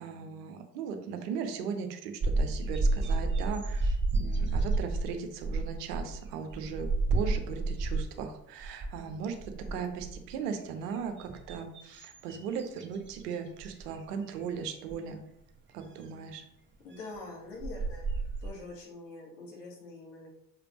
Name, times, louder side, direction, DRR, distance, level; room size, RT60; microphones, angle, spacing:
voice 1, 0.0-15.2 15.7-16.4, right 6 dB, 75° right, 6 dB, 1.0 m, -38 dB
sound 1, 2.2-8.3 8.6-9.0 9.3-10.3 10.9-13.2 13.6-13.8 14.9-15.0 17.1-17.2 17.6-18.5, right 3 dB, 25° right, 1.0 m, -30 dB
voice 2, 16.8-18.1 18.4-20.3, left 3 dB, 75° left, -2 dB, 2.0 m, -45 dB
6.3 x 5.1 x 3.0 m, 0.82 s
figure-of-eight pair, 55°, 48 cm